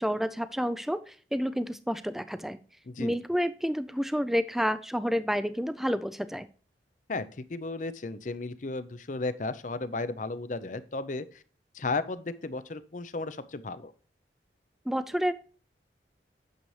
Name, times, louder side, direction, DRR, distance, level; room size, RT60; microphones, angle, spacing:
voice 1, 0.0-2.6 3.0-6.5 14.9-15.3, equal, ahead, 13 dB, 0.4 m, -29 dB
voice 2, 7.1-11.4 11.7-13.9, left 3 dB, 45° left, 14 dB, 0.6 m, -34 dB
8.9 x 6.8 x 3.2 m, 0.39 s
head